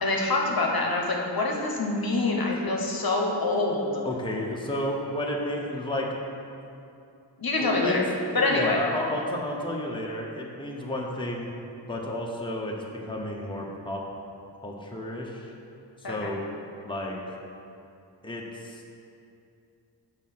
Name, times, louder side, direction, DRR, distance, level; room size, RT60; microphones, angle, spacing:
voice 1, 0.0-4.0 7.4-8.0 8.3-8.8 16.0-16.3, left 2 dB, 55° left, -1 dB, 1.0 m, -25 dB
voice 2, 4.0-6.2 7.6-8.0 8.3-11.5 11.9-12.7 13.0-14.0 14.6-15.5 16.0-16.4 16.8-17.4 18.2-18.8, left 1 dB, 10° left, -2 dB, 0.9 m, -32 dB
6.8 x 4.1 x 5.9 m, 2.6 s
wide cardioid pair, 55°, 44 cm